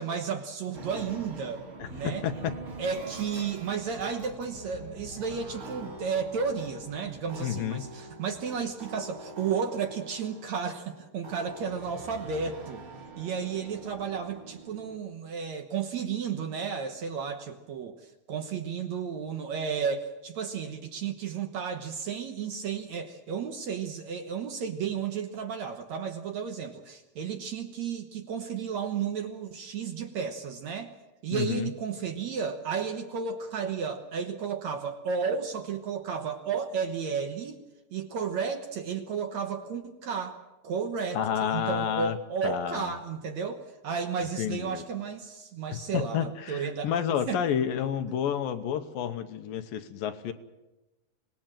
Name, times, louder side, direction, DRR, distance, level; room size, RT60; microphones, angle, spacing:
voice 1, 0.0-1.6 1.9-2.3 2.8-12.8 13.2-30.9 31.2-37.6 37.9-40.4 40.6-41.2 41.5-46.9 47.3-47.4, right 6 dB, 60° right, 6 dB, 2.0 m, -33 dB
sound 1, 0.7-15.0, right 2 dB, 35° right, 3.2 m, -44 dB
voice 2, 1.8-2.5 7.4-7.8 31.3-31.7 41.1-42.2 42.4-42.9 44.4-44.8 45.7-50.3, left 9 dB, 75° left, 9 dB, 2.6 m, -30 dB
25.0 x 19.0 x 7.6 m, 1.0 s
omnidirectional pair, 4.2 m